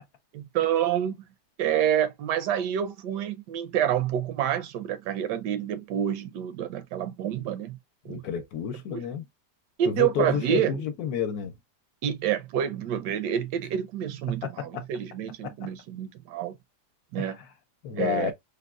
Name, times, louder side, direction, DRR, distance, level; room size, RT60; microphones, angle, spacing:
voice 1, 0.3-1.3 1.6-7.8 8.0-8.2 8.9-9.0 9.8-10.7 12.0-16.6 17.1-17.4 17.9-18.3, right 10 dB, 80° right, 1.2 m, -28 dB
voice 2, 8.1-9.2 9.8-11.5 14.4-14.8 15.4-15.5 17.2-17.3 17.8-18.3, left 8 dB, 70° left, 1.1 m, -30 dB
3.5 x 2.2 x 2.3 m
omnidirectional pair, 1.8 m